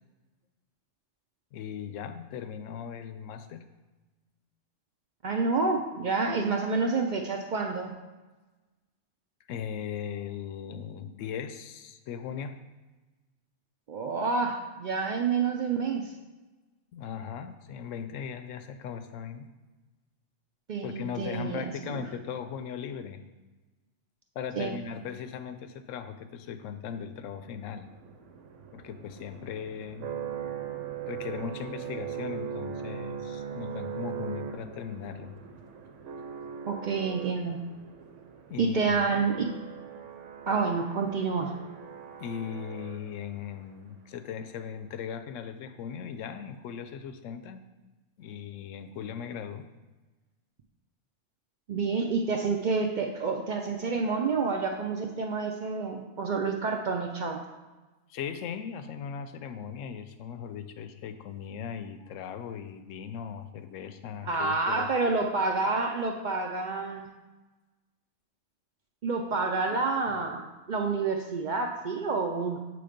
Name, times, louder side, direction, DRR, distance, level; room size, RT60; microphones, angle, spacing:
voice 1, 1.5-3.6 9.5-12.6 16.9-19.5 20.8-23.2 24.4-27.9 28.7-30.1 31.1-35.3 38.5-39.0 42.2-47.6 48.2-49.7 58.1-64.9 70.1-70.2, left 7 dB, 85° left, 9 dB, 0.9 m, -38 dB
voice 2, 5.2-7.9 13.9-16.1 20.7-22.0 24.6-24.7 36.7-37.6 38.6-39.5 40.5-41.5 51.7-57.4 64.2-67.1 69.0-70.4 70.7-72.6, right 4 dB, 60° right, 3 dB, 0.5 m, -28 dB
sound 1, 27.2-43.4, right 8 dB, 80° right, 1.0 m, -40 dB
7.7 x 3.3 x 5.1 m, 1.2 s
omnidirectional pair, 1.3 m